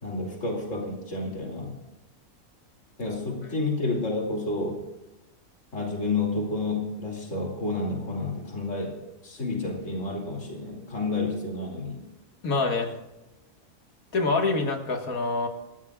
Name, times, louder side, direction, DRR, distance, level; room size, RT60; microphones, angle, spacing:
voice 1, 0.0-1.7 3.0-4.8 5.7-12.0, left 3 dB, 60° left, 0 dB, 3.3 m, -30 dB
voice 2, 12.4-12.9 14.1-15.5, left 3 dB, 90° left, 3 dB, 2.3 m, -25 dB
21.5 x 14.5 x 2.4 m, 1.0 s
omnidirectional pair, 1.4 m